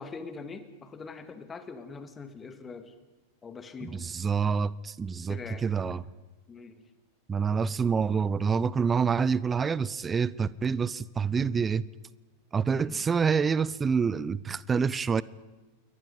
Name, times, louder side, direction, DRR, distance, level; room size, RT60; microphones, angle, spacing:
voice 1, 0.0-2.9 3.4-4.1 5.3-5.6 6.5-6.8 12.7-13.0, left 4 dB, 20° left, 9 dB, 2.4 m, -43 dB
voice 2, 3.8-6.0 7.3-11.9 12.5-15.2, right 6 dB, 20° right, 21 dB, 0.7 m, -27 dB
28.5 x 23.0 x 5.4 m, 1.2 s
figure-of-eight pair, 90°, 0 cm